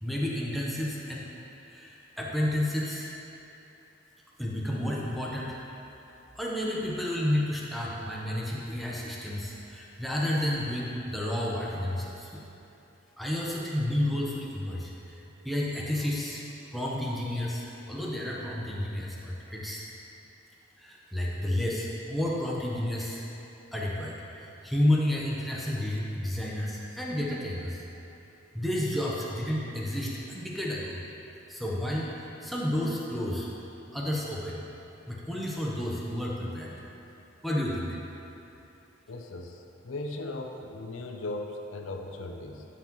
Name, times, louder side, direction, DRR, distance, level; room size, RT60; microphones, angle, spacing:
voice 1, 0.0-1.2 1.6-3.1 4.4-5.6 6.4-12.4 13.2-14.9 15.4-16.4 16.7-19.8 20.8-23.2 23.7-27.8 28.5-31.0 31.5-32.1 32.4-33.5 33.9-34.6 35.1-36.8 37.4-38.0, left 1 dB, ahead, -5 dB, 0.8 m, -31 dB
voice 2, 39.1-42.7, left 2 dB, 85° left, 3 dB, 0.6 m, -38 dB
11.5 x 5.7 x 3.1 m, 3.0 s
head